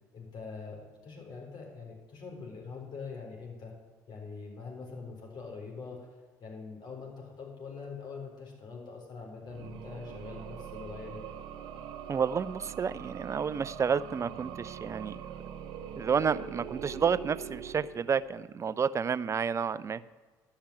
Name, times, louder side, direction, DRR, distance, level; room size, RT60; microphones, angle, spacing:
voice 1, 0.1-3.7 4.1-6.0 6.4-11.2, left 4 dB, 55° left, 0 dB, 4.3 m, -43 dB
sound 1, 9.4-18.5, right 8 dB, 65° right, 1.0 m, -43 dB
voice 2, 12.1-15.2 16.0-20.0, right 6 dB, 35° right, 16 dB, 0.5 m, -30 dB
12.0 x 5.7 x 8.8 m, 1.4 s
hypercardioid pair, 65°, 9 cm